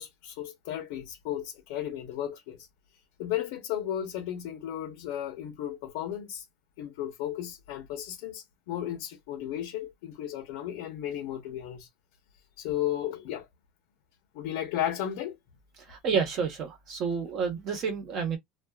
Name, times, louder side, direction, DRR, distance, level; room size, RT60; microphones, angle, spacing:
voice 1, 0.0-2.6 3.2-6.4 6.8-11.9 12.6-13.5 14.3-15.4, left 11 dB, 70° left, 0.8 m, -34 dB
voice 2, 15.9-18.4, right 6 dB, 40° right, 1.0 m, -29 dB
2.4 x 2.3 x 2.3 m
cardioid pair, 160°, 0 cm